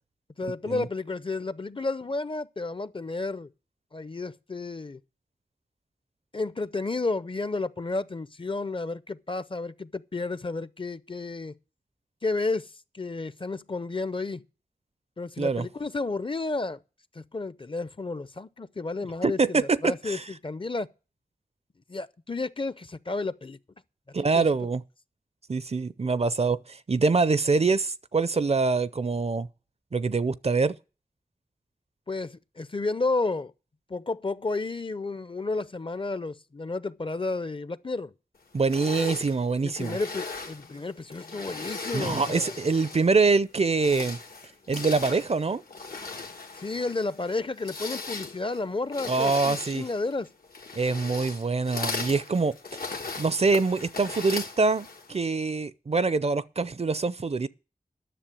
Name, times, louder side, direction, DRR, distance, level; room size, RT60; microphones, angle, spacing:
voice 1, 0.4-3.5 3.9-5.0 6.3-11.5 12.2-14.4 15.2-16.8 17.1-20.9 21.9-23.6 24.3-24.5 32.1-33.5 33.9-38.1 39.6-42.5 46.5-50.3 52.4-52.5, left 3 dB, 35° left, 0.6 m, -32 dB
voice 2, 19.2-20.2 24.1-24.8 25.5-29.5 29.9-30.8 38.5-40.0 41.9-44.2 44.7-45.6 49.1-49.9 50.8-52.6 53.2-57.5, right 4 dB, 45° right, 0.5 m, -25 dB
sound 1, 38.6-43.2 43.6-55.2, left 3 dB, 85° left, 1.4 m, -38 dB
10.0 x 6.7 x 8.9 m
wide cardioid pair, 50°, 15 cm